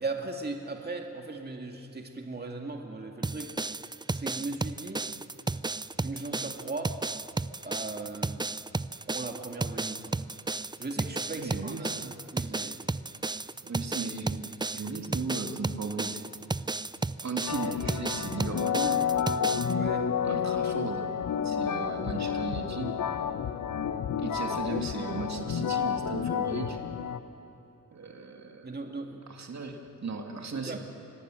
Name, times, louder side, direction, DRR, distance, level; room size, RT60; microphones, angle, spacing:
voice 1, 0.0-3.5 4.1-5.1 6.0-7.0 7.6-8.5 9.1-10.1 10.8-12.9 19.7-20.1 24.3-24.4 28.6-29.2 30.5-30.8, right 3 dB, 30° right, 2 dB, 2.1 m, -38 dB
sound 1, 3.2-19.7, right 3 dB, 15° right, 0.5 m, -33 dB
voice 2, 11.4-12.1 13.6-14.4 14.7-16.2 17.2-19.0 20.2-21.1 21.4-23.0 24.2-26.8 27.9-28.8 29.3-30.8, right 4 dB, 55° right, 3 dB, 2.4 m, -36 dB
sound 2, 17.5-27.2, left 7 dB, 80° left, 1.1 m, -30 dB
25.0 x 20.5 x 7.7 m, 3.0 s
cardioid pair, 75°, 32 cm